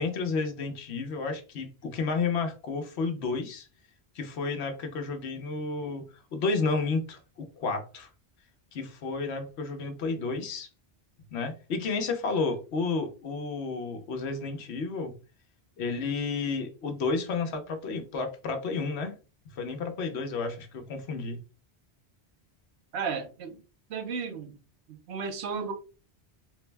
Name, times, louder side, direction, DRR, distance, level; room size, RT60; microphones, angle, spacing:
voice 1, 0.0-3.7 4.1-6.0 6.3-8.1 8.7-10.7 11.3-15.1 15.8-19.2 19.5-21.4, left 4 dB, 85° left, 1.0 m, -31 dB
voice 2, 22.9-23.6 23.9-24.5 24.9-25.7, right 5 dB, 90° right, 0.9 m, -34 dB
3.4 x 2.1 x 3.3 m
omnidirectional pair, 1.1 m